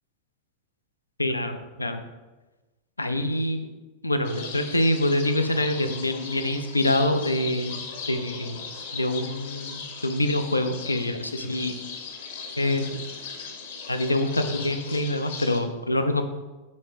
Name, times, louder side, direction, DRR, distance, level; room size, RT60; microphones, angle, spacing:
voice 1, 1.2-2.0 3.0-3.7 4.0-7.8 8.1-8.6 8.9-11.8 12.6-13.0 13.9-16.2, left 1 dB, 85° left, 8 dB, 0.5 m, -25 dB
sound 1, 4.2-15.6, left 5 dB, 60° left, 1.0 m, -38 dB
5.3 x 4.4 x 5.0 m, 1.2 s
figure-of-eight pair, 90°, 0 cm